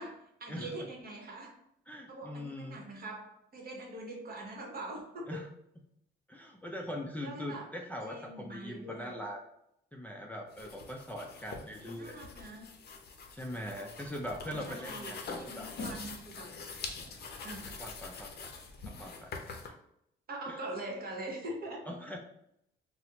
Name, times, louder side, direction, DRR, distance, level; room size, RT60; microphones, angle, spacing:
voice 1, 0.0-1.5 2.1-5.4 7.2-7.7 8.0-9.2 11.8-12.7 14.7-16.5 17.4-17.8 20.3-21.9, right 1 dB, 50° right, 0 dB, 1.0 m, -43 dB
voice 2, 1.9-2.8 5.3-5.5 6.3-9.4 9.9-12.2 13.3-15.7 17.8-18.5 18.9-19.7 20.5-20.6 21.9-22.2, equal, 10° left, -1 dB, 0.4 m, -42 dB
sound 1, 10.5-19.7, left 4 dB, 55° left, 0.6 m, -44 dB
4.1 x 2.0 x 2.8 m, 0.76 s
cardioid pair, 90°, 20 cm